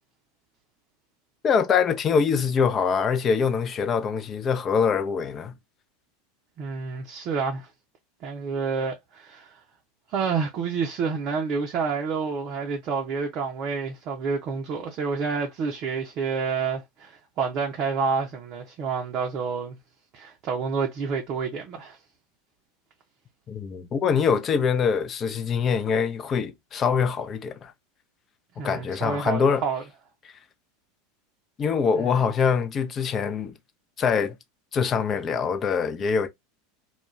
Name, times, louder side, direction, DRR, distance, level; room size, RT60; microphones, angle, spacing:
voice 1, 1.4-5.5 23.5-27.7 28.6-29.6 31.6-33.5 34.0-34.4 34.7-36.3, left 6 dB, 30° left, 0.5 m, -24 dB
voice 2, 6.6-7.7 8.2-9.5 10.1-19.8 20.1-22.0 28.6-29.8 31.9-32.2, right 5 dB, 45° right, 0.6 m, -29 dB
2.3 x 2.2 x 3.0 m
figure-of-eight pair, 80°, 0 cm